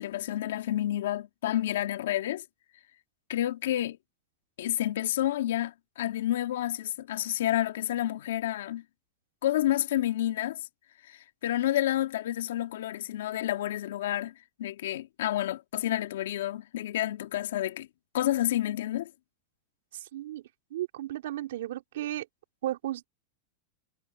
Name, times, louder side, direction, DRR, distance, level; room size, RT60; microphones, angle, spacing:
voice 1, 0.0-2.4 3.3-4.0 4.6-8.8 9.4-10.6 11.0-14.3 14.6-17.9 18.1-19.1, left 13 dB, 75° left, 3.1 m, -29 dB
voice 2, 20.1-20.4 20.7-22.3 22.6-23.0, right 13 dB, 70° right, 3.7 m, -34 dB
supercardioid pair, 180°, 0 cm